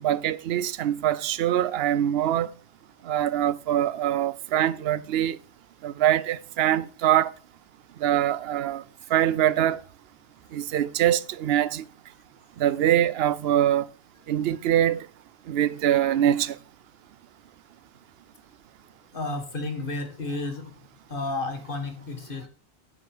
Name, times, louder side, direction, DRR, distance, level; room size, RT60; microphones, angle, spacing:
voice 1, 0.0-2.5 3.0-5.4 5.8-7.3 8.0-8.8 9.1-9.8 10.5-11.9 12.6-13.9 14.3-15.1 15.5-16.6, right 11 dB, 70° right, 0.8 m, -23 dB
voice 2, 19.1-20.8 21.1-22.5, left 2 dB, 55° left, 2.0 m, -32 dB
8.1 x 7.1 x 4.9 m
omnidirectional pair, 1.1 m